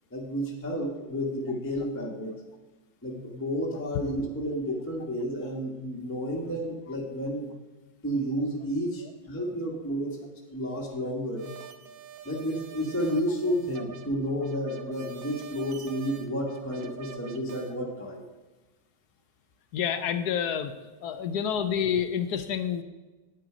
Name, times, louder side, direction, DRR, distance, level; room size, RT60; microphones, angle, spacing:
voice 1, 0.1-2.3 3.0-7.5 8.0-11.4 12.2-18.2, equal, 10° left, -2 dB, 1.2 m, -31 dB
sound 1, 11.4-17.7, right 8 dB, 65° right, 0.9 m, -46 dB
voice 2, 19.7-20.7 21.0-22.8, left 8 dB, 70° left, 10 dB, 1.0 m, -28 dB
9.0 x 8.9 x 5.0 m, 1.2 s
omnidirectional pair, 2.2 m